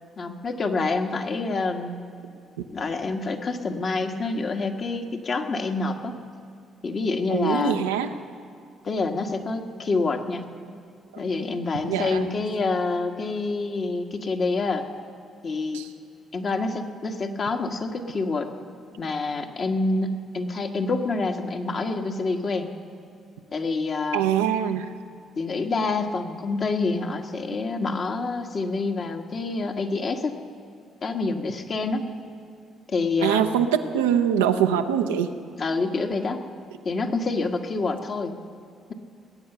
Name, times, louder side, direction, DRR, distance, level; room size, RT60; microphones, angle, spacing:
voice 1, 0.2-2.0 2.7-6.1 6.8-7.8 8.8-10.4 11.2-14.8 15.4-15.8 16.3-18.5 19.0-22.7 23.5-24.2 25.4-30.4 31.0-32.0 32.9-33.6 35.6-36.4 36.8-38.3, left 3 dB, 50° left, 4 dB, 1.5 m, -27 dB
voice 2, 7.3-8.1 11.9-12.3 15.7-15.9 24.1-24.9 33.2-35.3, right 9 dB, 90° right, 7 dB, 0.7 m, -23 dB
19.5 x 8.8 x 6.9 m, 2.4 s
hypercardioid pair, 50°, 0 cm